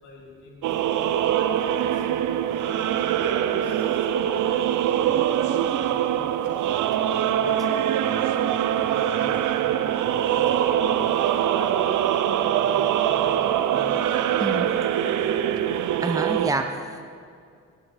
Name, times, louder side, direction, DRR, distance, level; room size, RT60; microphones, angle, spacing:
voice 1, 0.0-0.6 0.9-2.0 2.6-2.9 3.5-8.3 8.8-9.9 10.2-10.9 11.5-11.8 12.2-14.0 14.3-14.7 15.0-15.3, left 2 dB, 65° left, -1 dB, 2.8 m, -46 dB
sound 1, 0.6-16.5, right 10 dB, 70° right, 0.7 m, -23 dB
voice 2, 16.0-17.0, right 2 dB, 10° right, 6 dB, 0.9 m, -27 dB
16.0 x 9.1 x 4.4 m, 2.2 s
supercardioid pair, 70°, 32 cm